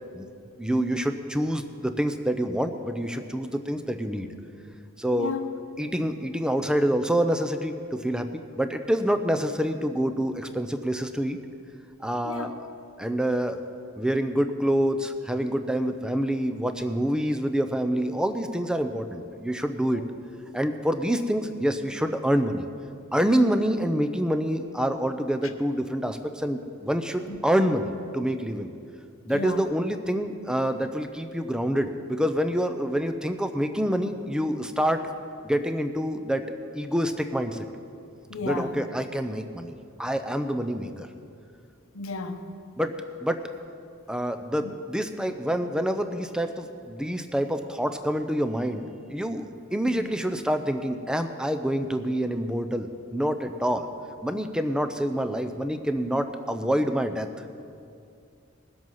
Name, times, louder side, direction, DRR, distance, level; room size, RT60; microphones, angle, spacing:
voice 1, 0.6-4.3 5.0-5.4 5.8-8.3 8.6-11.4 12.0-12.6 13.0-13.6 14.0-20.1 20.5-22.7 23.1-28.7 29.3-35.0 35.4-37.7 38.4-41.1 42.8-43.4 44.1-53.9 54.2-57.3, equal, 5° right, 8 dB, 0.6 m, -27 dB
voice 2, 5.1-5.4 12.2-12.5 19.9-20.0 27.3-27.4 29.2-29.6 38.3-38.7 41.9-42.4 50.0-50.1, left 3 dB, 80° left, 6 dB, 1.0 m, -33 dB
20.5 x 7.8 x 5.6 m, 2.4 s
head